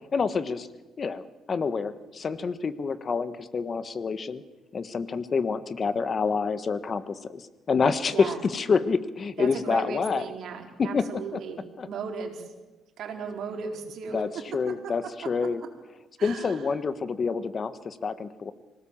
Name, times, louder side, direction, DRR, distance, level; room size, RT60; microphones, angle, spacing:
voice 1, 0.1-0.7 1.0-4.4 4.7-10.2 10.8-11.0 11.8-11.9 14.1-15.6 16.2-18.5, left 5 dB, 40° left, 12 dB, 1.4 m, -27 dB
voice 2, 8.1-8.4 9.4-12.5 13.0-14.2 16.2-16.6, right 5 dB, 65° right, 2 dB, 4.3 m, -36 dB
25.5 x 18.0 x 7.4 m, 1.1 s
cardioid pair, 100°, 0 cm